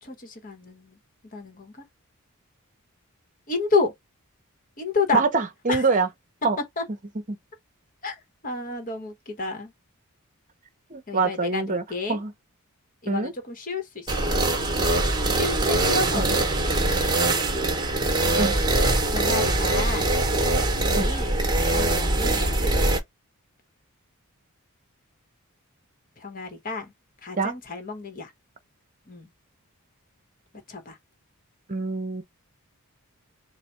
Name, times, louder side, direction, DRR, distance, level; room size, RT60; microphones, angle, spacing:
voice 1, 0.0-1.0 1.3-1.8 3.5-3.9 4.8-5.2 5.7-5.8 6.8-6.9 8.0-8.2 8.4-9.7 11.1-12.2 13.0-14.3 15.3-16.9 18.2-18.5 19.1-20.1 20.9-21.4 21.7-22.7 26.2-26.9 27.2-28.3 29.1-29.3 30.7-31.0, left 4 dB, 40° left, 1.0 m, -30 dB
voice 2, 5.1-6.1 6.4-6.6 7.3-7.4 10.9-11.8 12.1-12.3 13.1-13.3 16.1-16.3 18.4-18.5 21.0-21.1 27.4-27.5 31.7-32.2, right 4 dB, 35° right, 0.8 m, -24 dB
sound 1, 14.1-23.0, right 2 dB, 20° right, 1.1 m, -23 dB
4.0 x 2.1 x 4.4 m
head